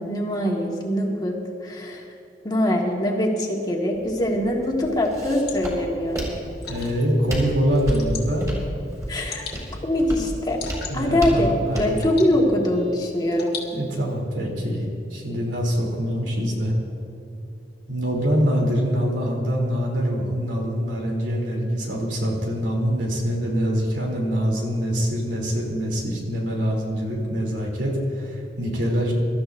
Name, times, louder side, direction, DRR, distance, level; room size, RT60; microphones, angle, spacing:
voice 1, 0.0-2.0 2.4-6.2 9.1-9.4 9.8-10.6 10.9-11.5 11.7-13.5, left 1 dB, 25° left, -1 dB, 1.7 m, -23 dB
Walk footsteps, 3.9-12.0, equal, 20° right, 3.9 m, -32 dB
Water / Drip, 4.8-14.2, left 6 dB, 65° left, 2.0 m, -42 dB
voice 2, 6.7-8.5 10.9-12.0 13.7-16.7 17.9-29.2, equal, 90° right, -1 dB, 3.1 m, -24 dB
25.0 x 13.0 x 2.6 m, 2.6 s
head